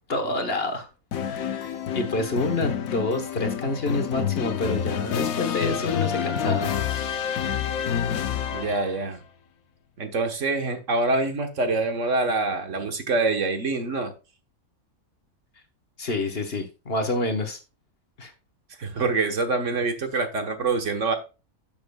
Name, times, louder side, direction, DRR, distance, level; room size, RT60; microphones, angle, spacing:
voice 1, 0.1-0.9 1.2-6.7 16.0-17.6 18.2-18.3, left 2 dB, 45° left, 8 dB, 1.5 m, -28 dB
sound 1, 1.1-9.0, left 8 dB, 75° left, 1.2 m, -28 dB
voice 2, 8.5-9.2 10.0-14.1 18.8-21.1, right 3 dB, 60° right, 6 dB, 1.6 m, -25 dB
12.0 x 7.1 x 2.3 m, 0.30 s
omnidirectional pair, 1.5 m